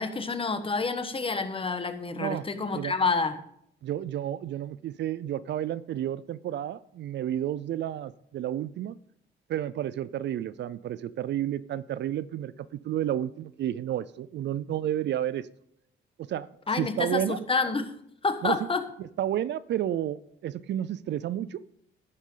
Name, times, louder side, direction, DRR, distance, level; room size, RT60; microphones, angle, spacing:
voice 1, 0.0-3.4 16.7-17.9 18.2-18.8, left 4 dB, 25° left, 9 dB, 1.3 m, -28 dB
voice 2, 3.8-9.0 9.5-15.5 16.2-16.5 16.8-17.4 18.4-18.6 19.0-21.6, right 11 dB, 65° right, 18 dB, 0.5 m, -31 dB
12.0 x 9.8 x 3.9 m, 0.71 s
cardioid pair, 90°, 20 cm